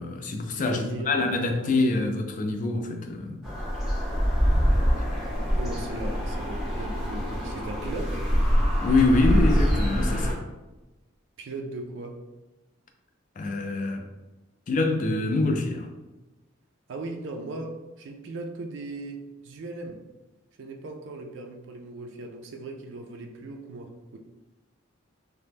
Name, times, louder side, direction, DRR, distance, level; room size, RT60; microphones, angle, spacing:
voice 1, 0.0-3.4 8.8-10.4 13.4-14.1 14.7-15.9, left 2 dB, 40° left, 4 dB, 0.3 m, -25 dB
voice 2, 0.6-1.2 5.5-8.2 11.4-12.2 16.9-20.0 20.6-24.2, right 2 dB, 65° right, 2 dB, 0.3 m, -38 dB
sound 1, 3.4-10.3, equal, ahead, 0.8 m, -25 dB
2.8 x 2.1 x 3.3 m, 1.1 s
head